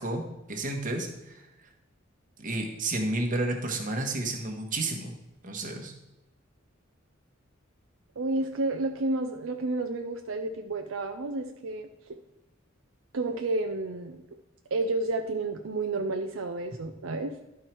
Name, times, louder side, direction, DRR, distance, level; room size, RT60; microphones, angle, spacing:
voice 1, 0.0-1.4 2.4-5.2 5.4-5.9, right 2 dB, 40° right, 4 dB, 1.2 m, -31 dB
voice 2, 8.2-12.2 13.1-14.2 14.7-17.4, right 2 dB, 75° right, 5 dB, 0.6 m, -31 dB
11.5 x 4.7 x 4.5 m, 0.95 s
head